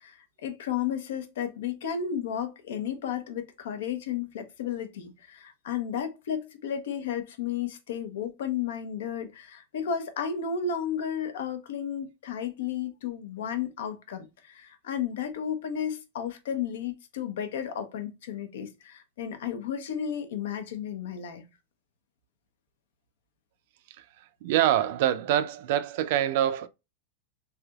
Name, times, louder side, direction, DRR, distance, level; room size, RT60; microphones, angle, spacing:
voice 1, 0.0-21.4, left 8 dB, 75° left, 0.8 m, -33 dB
voice 2, 24.4-26.7, right 11 dB, 55° right, 0.4 m, -25 dB
3.3 x 2.8 x 2.3 m
supercardioid pair, 160°, 0 cm